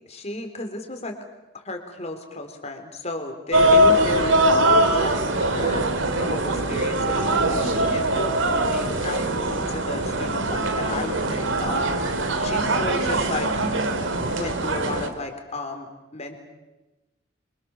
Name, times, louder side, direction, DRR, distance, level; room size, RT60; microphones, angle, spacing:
voice 1, 0.1-1.2 1.6-13.5 14.3-16.4, left 2 dB, 35° left, 5 dB, 3.6 m, -34 dB
sound 1, 3.5-15.1, right 1 dB, 75° right, 2.6 m, -22 dB
27.5 x 24.5 x 7.1 m, 1.1 s
head